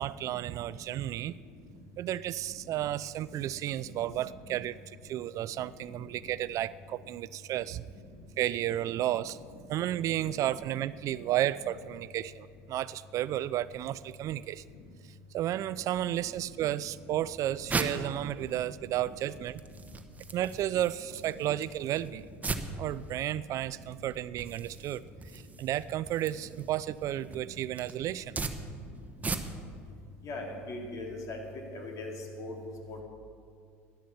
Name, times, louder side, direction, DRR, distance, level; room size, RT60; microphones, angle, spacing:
voice 1, 0.0-1.3 2.0-4.8 5.0-7.8 8.4-9.4 9.7-14.6 15.3-19.6 20.3-22.3 22.8-25.0 25.3-28.4, right 13 dB, 50° right, 18 dB, 0.4 m, -32 dB
voice 2, 3.8-4.6 5.5-6.3 8.8-9.2 9.5-9.6 10.3-10.4 11.5-11.7 16.0-16.1 16.6-16.7 17.0-17.2 17.8-18.4 18.9-19.1 21.2-21.3 21.8-22.1 23.7-23.8 26.3-26.4 27.2-27.5 28.3-28.4 30.2-31.4 31.7-32.6 32.9-33.0, left 2 dB, 50° left, 1 dB, 3.2 m, -43 dB
sound 1, 17.0-29.8, right 4 dB, 20° right, 1.1 m, -40 dB
11.5 x 11.0 x 7.0 m, 2.3 s
hypercardioid pair, 75°, 7 cm